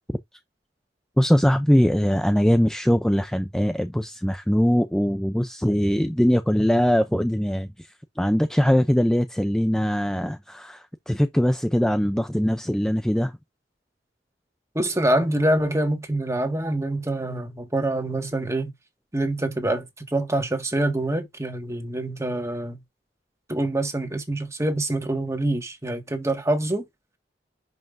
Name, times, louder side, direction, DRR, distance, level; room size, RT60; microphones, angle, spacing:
voice 1, 1.2-7.7 8.2-10.8 11.1-13.3, equal, 5° left, 0.4 m, -21 dB
voice 2, 14.7-18.7 19.1-19.8 20.1-22.8 23.5-26.8, right 1 dB, 15° right, 1.7 m, -25 dB
10.5 x 5.6 x 2.6 m
head